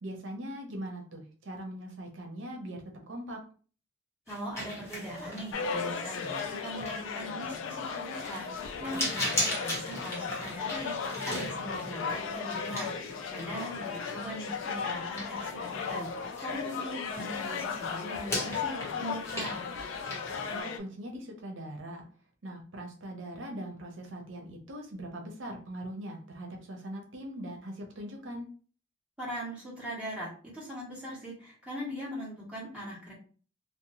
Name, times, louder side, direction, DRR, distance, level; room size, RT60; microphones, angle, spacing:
voice 1, 0.0-3.4 20.5-22.1 22.4-28.5, right 1 dB, 85° right, 2 dB, 0.6 m, -41 dB
sound 1, 4.3-16.9 17.1-20.6, left 1 dB, 15° left, 1.1 m, -39 dB
voice 2, 4.3-16.1 16.4-19.7 29.2-30.3 30.5-33.1, equal, 5° right, -8 dB, 1.3 m, -40 dB
sound 2, 5.5-20.8, left 5 dB, 80° left, 0.4 m, -36 dB
2.6 x 2.1 x 2.9 m, 0.41 s
head